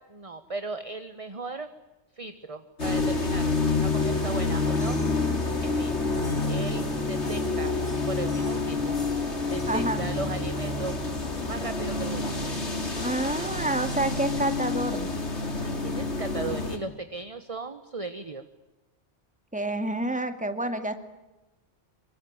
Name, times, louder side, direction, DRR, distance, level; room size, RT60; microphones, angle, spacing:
voice 1, 0.0-1.7 2.1-5.0 5.6-6.1 6.5-7.7 8.1-9.0 9.5-11.0 11.5-12.3 15.6-18.4, right 3 dB, 30° right, 10 dB, 1.3 m, -37 dB
sound 1, 2.8-16.8, left 3 dB, 65° left, 3.5 m, -28 dB
voice 2, 9.7-10.0 12.9-15.1 19.5-20.9, right 2 dB, 5° right, 8 dB, 2.3 m, -28 dB
26.0 x 24.0 x 8.9 m, 1.0 s
omnidirectional pair, 1.2 m